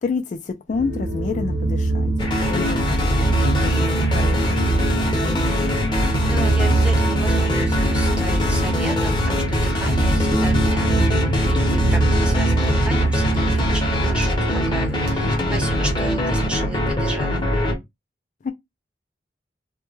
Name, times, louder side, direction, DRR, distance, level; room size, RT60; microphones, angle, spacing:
voice 1, 0.0-3.1 3.6-4.8 15.2-15.5 18.4-18.5, left 4 dB, 45° left, 0.3 m, -29 dB
sound 1, 0.7-16.9, right 2 dB, 75° right, 0.7 m, -23 dB
sound 2, 2.2-17.7, left 1 dB, 25° left, 0.7 m, -23 dB
voice 2, 5.9-17.5, right 1 dB, 5° right, 0.6 m, -34 dB
2.2 x 2.1 x 3.0 m
head